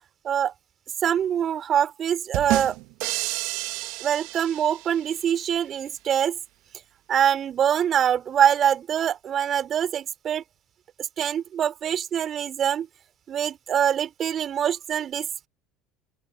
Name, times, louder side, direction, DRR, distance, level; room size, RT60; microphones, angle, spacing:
voice 1, 1.0-2.8 4.0-6.4 7.1-10.4 11.2-12.9 13.3-15.3, right 9 dB, 45° right, 3.3 m, -24 dB
sound 1, 2.3-5.2, right 24 dB, 65° right, 2.0 m, -30 dB
open air
hypercardioid pair, 75°, 0 cm